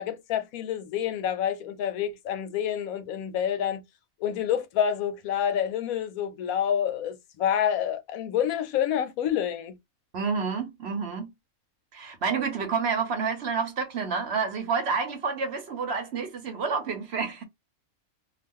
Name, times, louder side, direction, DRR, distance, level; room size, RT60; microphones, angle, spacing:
voice 1, 0.0-3.8 4.2-9.8, left 9 dB, 85° left, 1.0 m, -28 dB
voice 2, 10.1-11.3 11.9-17.4, right 5 dB, 55° right, 0.9 m, -29 dB
2.4 x 2.3 x 3.5 m
omnidirectional pair, 1.5 m